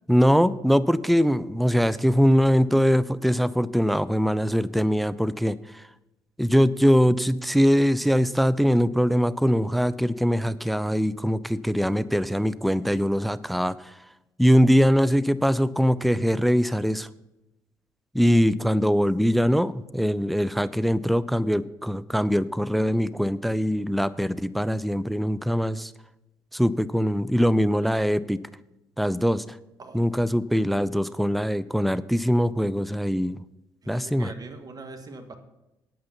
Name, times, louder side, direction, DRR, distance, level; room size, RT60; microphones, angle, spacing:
voice 1, 0.1-5.6 6.4-13.9 14.4-17.1 18.1-25.9 26.5-28.4 29.0-29.4 29.9-33.4 33.9-34.3, equal, ahead, 17 dB, 0.4 m, -22 dB
voice 2, 29.8-30.4 33.8-35.4, right 3 dB, 35° right, 7 dB, 1.6 m, -43 dB
9.1 x 8.7 x 5.7 m, 0.95 s
figure-of-eight pair, 45°, 11 cm